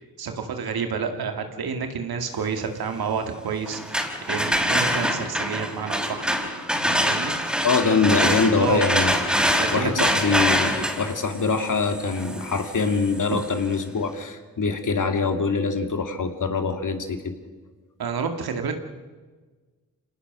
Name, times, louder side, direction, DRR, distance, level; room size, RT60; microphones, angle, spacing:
voice 1, 0.2-6.3 7.0-7.4 8.6-8.8 9.5-10.1 18.0-18.7, right 6 dB, 80° right, 6 dB, 2.2 m, -29 dB
sound 1, 3.7-13.5, equal, ahead, 5.2 m, -25 dB
voice 2, 7.6-9.1 9.7-17.2, left 4 dB, 55° left, 6 dB, 2.8 m, -23 dB
26.0 x 19.0 x 6.2 m, 1.3 s
supercardioid pair, 45°, 37 cm